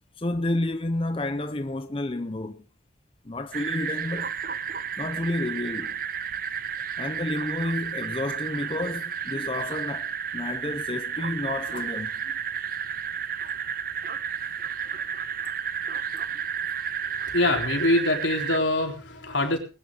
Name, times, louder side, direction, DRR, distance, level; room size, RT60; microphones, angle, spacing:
voice 1, 0.2-2.6 3.2-4.3 5.0-6.0 7.0-12.3, left 2 dB, 30° left, 0.8 m, -30 dB
sound 1, 3.5-18.6, right 7 dB, 50° right, 0.8 m, -32 dB
voice 2, 17.2-19.6, left 2 dB, 85° left, 4.0 m, -24 dB
20.5 x 11.0 x 3.9 m
head